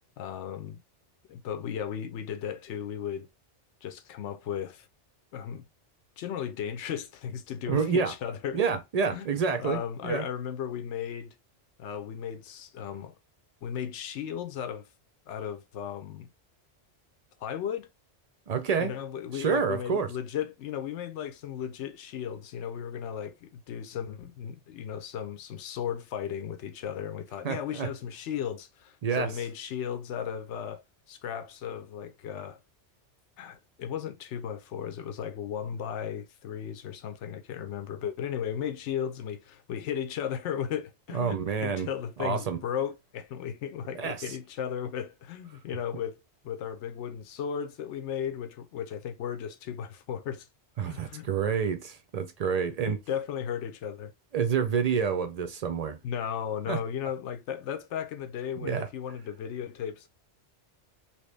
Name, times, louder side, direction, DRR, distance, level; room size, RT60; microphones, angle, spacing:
voice 1, 0.2-0.8 1.3-3.3 3.8-4.9 5.3-5.6 6.2-8.6 9.1-9.3 9.6-11.3 11.8-13.1 13.6-14.8 15.3-16.3 17.4-17.9 18.8-30.8 31.1-32.6 33.4-46.2 46.4-50.5 50.9-51.3 52.9-54.1 56.0-60.1, left 8 dB, 80° left, 0.9 m, -35 dB
voice 2, 7.7-8.1 8.5-10.2 18.5-18.9 19.3-20.1 27.4-27.9 29.0-29.3 41.1-41.9 42.2-42.6 43.9-44.3 50.8-53.0 54.3-56.0 56.7-56.8 58.6-58.9, right 6 dB, 60° right, 0.4 m, -28 dB
3.0 x 2.8 x 3.2 m
omnidirectional pair, 1.2 m